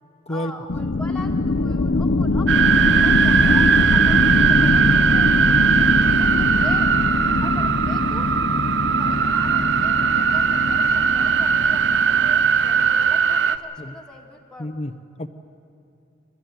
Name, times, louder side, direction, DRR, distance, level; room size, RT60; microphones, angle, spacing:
voice 1, 0.3-5.3 6.0-6.9 7.4-8.3 8.8-14.7, left 1 dB, 5° left, 0 dB, 1.8 m, -41 dB
sound 1, 0.7-13.0, left 2 dB, 65° left, 0.7 m, -22 dB
sound 2, 2.5-13.6, right 7 dB, 70° right, 0.7 m, -19 dB
voice 2, 14.6-15.3, left 1 dB, 35° left, 10 dB, 0.8 m, -30 dB
29.0 x 13.0 x 9.0 m, 2.6 s
head